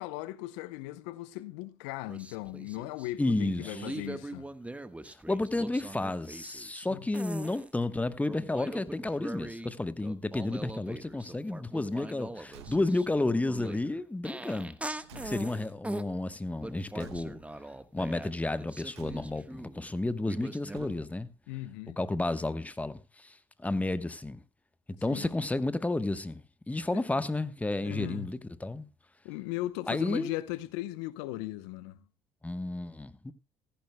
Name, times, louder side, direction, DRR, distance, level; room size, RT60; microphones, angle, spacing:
voice 1, 0.0-4.5 6.9-7.1 15.1-15.5 21.5-22.0 25.1-25.3 26.9-27.0 27.8-28.3 29.2-32.0, left 17 dB, 75° left, 0.8 m, -38 dB
sound 1, 2.1-3.1 3.6-6.9 7.1-7.7 8.3-9.7 10.0-16.1 16.6-19.9 20.3-20.9, right 2 dB, 10° right, 1.3 m, -42 dB
voice 2, 3.2-3.9 5.1-14.8 15.2-17.4 17.9-21.3 22.0-24.4 25.0-28.9 29.9-30.3 32.4-33.3, left 2 dB, 10° left, 1.1 m, -32 dB
Car / Truck / Slam, 12.4-13.2 14.4-15.9 17.0-17.7 18.9-19.6 20.7-21.4, right 9 dB, 85° right, 1.2 m, -52 dB
16.0 x 15.0 x 2.2 m
hypercardioid pair, 60°, 14 cm